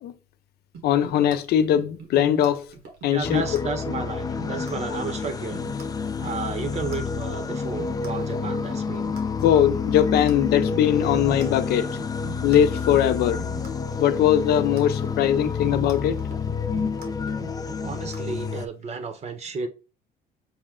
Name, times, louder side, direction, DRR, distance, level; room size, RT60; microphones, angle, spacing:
sound 1, 0.7-18.6, right 5 dB, 75° right, 1.4 m, -42 dB
voice 1, 0.8-2.7 3.0-3.4 9.4-11.9 12.4-13.4 14.0-16.2, left 10 dB, 70° left, 0.6 m, -20 dB
voice 2, 3.1-5.6 6.2-9.1 17.8-19.7, right 4 dB, 40° right, 0.9 m, -33 dB
sound 2, 3.2-18.7, left 5 dB, 20° left, 0.4 m, -29 dB
6.2 x 2.1 x 3.7 m
cardioid pair, 110°, 17 cm